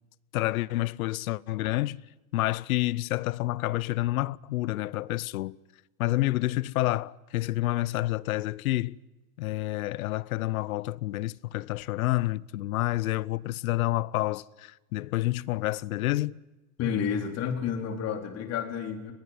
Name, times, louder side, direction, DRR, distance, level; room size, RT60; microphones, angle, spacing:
voice 1, 0.3-2.1 2.3-5.6 6.0-9.0 9.4-16.4, left 17 dB, 75° left, 0.8 m, -29 dB
voice 2, 16.8-19.1, left 7 dB, 35° left, 3.9 m, -30 dB
23.5 x 21.5 x 9.7 m
supercardioid pair, 135°, 43 cm